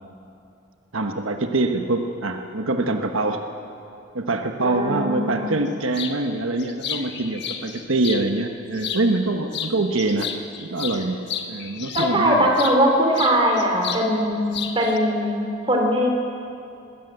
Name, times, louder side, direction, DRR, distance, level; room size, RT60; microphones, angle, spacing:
voice 1, 0.9-3.4 4.1-10.3 10.6-12.5, right 2 dB, 85° right, 5 dB, 1.2 m, -24 dB
voice 2, 4.6-5.5 11.9-16.1, equal, 25° right, 1 dB, 3.1 m, -21 dB
sound 1, 5.9-6.2 6.6-8.2 8.7-9.3 9.5-12.8 13.1-14.1 14.3-15.0, left 8 dB, 55° left, 1.3 m, -32 dB
21.0 x 17.0 x 8.1 m, 2.6 s
head